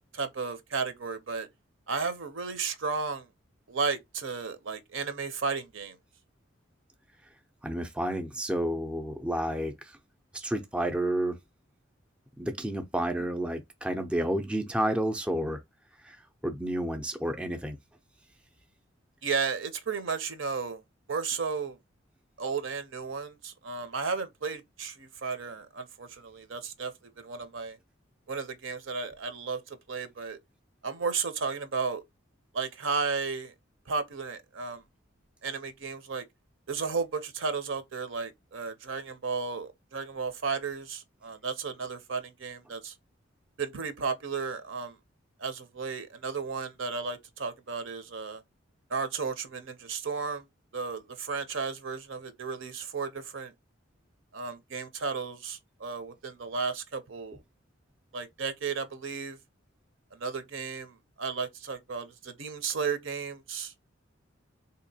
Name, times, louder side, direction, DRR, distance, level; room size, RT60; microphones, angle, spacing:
voice 1, 0.1-1.5 1.9-3.3 3.7-5.9 19.2-20.8 21.1-21.8 22.4-26.9 27.2-27.8 28.3-29.6 29.9-30.4 30.8-32.0 32.5-33.5 33.9-34.8 35.4-36.2 36.7-42.9 43.6-44.9 45.4-48.4 48.9-50.4 50.7-53.5 54.3-57.4 58.1-59.4 60.2-63.7, right 5 dB, 70° right, 0.7 m, -34 dB
voice 2, 7.6-10.0 10.3-11.4 12.4-15.6 16.0-16.2 16.4-17.8, right 1 dB, 5° right, 0.4 m, -30 dB
3.7 x 2.8 x 2.7 m
head